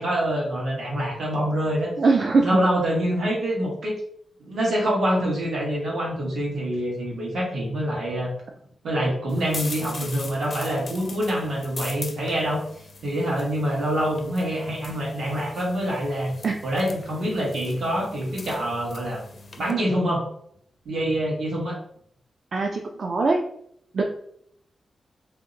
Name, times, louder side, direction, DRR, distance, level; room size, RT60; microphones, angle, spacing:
voice 1, 0.0-1.9 2.4-4.0 4.4-8.3 8.8-12.6 13.0-16.3 16.6-19.2 19.6-20.2 20.8-21.8, equal, 85° right, -4 dB, 1.3 m, -25 dB
voice 2, 2.0-2.6 16.4-16.5 22.5-23.4 23.9-24.0, right 3 dB, 50° right, 1 dB, 0.3 m, -21 dB
sound 1, 9.3-19.7, left 3 dB, 45° left, 0.4 m, -41 dB
2.8 x 2.1 x 3.8 m, 0.69 s
wide cardioid pair, 150°, 0 cm